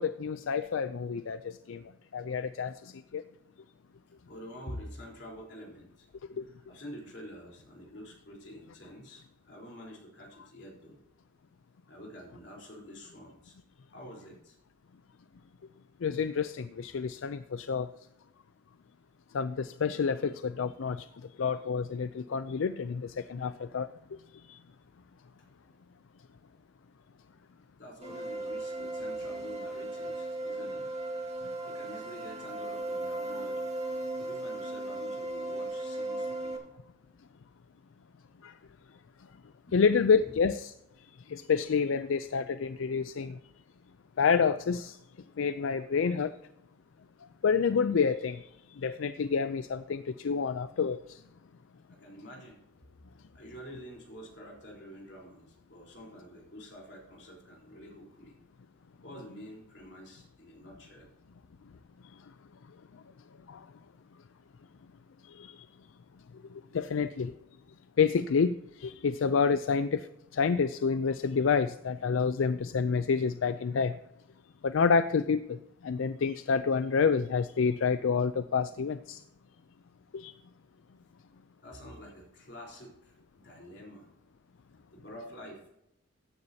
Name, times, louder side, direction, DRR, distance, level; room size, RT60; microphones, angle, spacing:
voice 1, 0.0-1.4 1.7-1.8 2.1-2.7 3.1-3.2 16.0-17.9 19.3-21.0 21.4-23.9 39.7-40.7 41.3-43.3 44.2-44.9 45.4-46.3 47.4-48.4 48.8-51.0 65.4-65.5 66.7-67.3 68.0-68.5 68.8-70.0 70.3-73.9 74.6-75.4 75.8-79.2 80.1-80.3, left 5 dB, 85° left, 13 dB, 0.4 m, -28 dB
voice 2, 4.3-6.1 6.4-11.0 11.9-13.6 13.9-14.6 25.4-25.8 27.8-30.9 31.6-33.8 34.2-36.7 39.7-39.8 51.9-52.6 53.3-58.4 59.0-61.1 81.6-84.1 84.9-85.7, equal, 60° left, -2 dB, 3.9 m, -48 dB
sound 1, 28.0-36.6, right 2 dB, 35° right, 1.8 m, -36 dB
14.0 x 9.7 x 2.8 m, 0.81 s
head